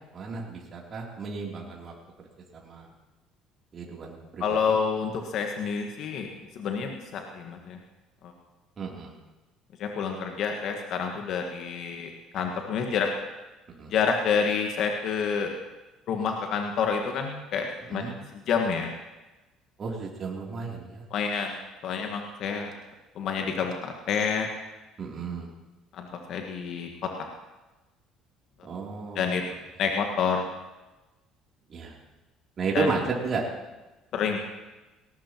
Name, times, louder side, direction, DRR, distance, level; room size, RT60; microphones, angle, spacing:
voice 1, 0.1-1.9 2.5-2.9 3.7-4.8 8.8-9.1 13.8-13.9 17.9-18.1 19.8-21.0 25.0-25.5 28.6-29.2 31.7-31.9 32.6-33.4, right 4 dB, 45° right, -2 dB, 3.2 m, -33 dB
voice 2, 4.4-7.8 8.2-8.3 9.8-13.1 13.9-15.5 16.1-18.0 18.5-18.9 21.1-21.6 21.8-22.7 23.1-24.5 25.9-26.9 29.1-29.4 29.8-30.4 32.7-32.9 34.1-34.5, left 6 dB, 60° left, 3 dB, 1.6 m, -28 dB
19.5 x 18.5 x 3.0 m, 1.1 s
hypercardioid pair, 60°, 0 cm